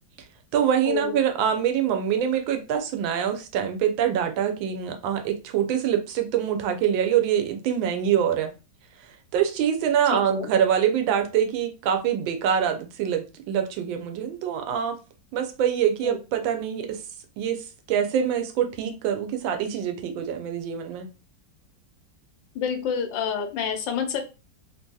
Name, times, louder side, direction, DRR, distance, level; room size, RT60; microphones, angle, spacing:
voice 1, 0.5-8.5 9.3-15.0 15.3-17.0 17.4-21.1, right 9 dB, 85° right, 1.4 m, -25 dB
voice 2, 10.1-10.5 16.0-16.2 22.5-24.2, left 7 dB, 80° left, 1.3 m, -28 dB
3.3 x 2.6 x 2.2 m
omnidirectional pair, 2.1 m